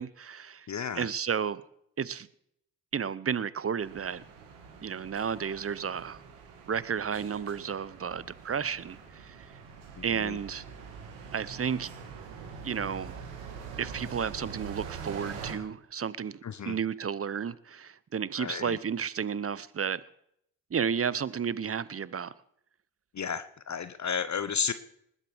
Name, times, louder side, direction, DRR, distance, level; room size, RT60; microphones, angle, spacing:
voice 1, 0.0-0.7 1.0-1.6 2.0-2.3 2.9-4.2 4.8-6.2 6.7-9.5 10.0-10.6 11.3-11.9 12.6-13.2 13.8-16.4 16.7-20.0 20.7-22.3, right 7 dB, 30° right, 0.8 m, -32 dB
voice 2, 0.7-1.1 10.0-10.4 16.4-16.8 18.4-18.8 23.1-24.7, left 6 dB, 40° left, 0.9 m, -33 dB
sound 1, 3.8-15.5, right 5 dB, 85° right, 2.1 m, -44 dB
20.0 x 8.3 x 6.3 m
hypercardioid pair, 40°, 43 cm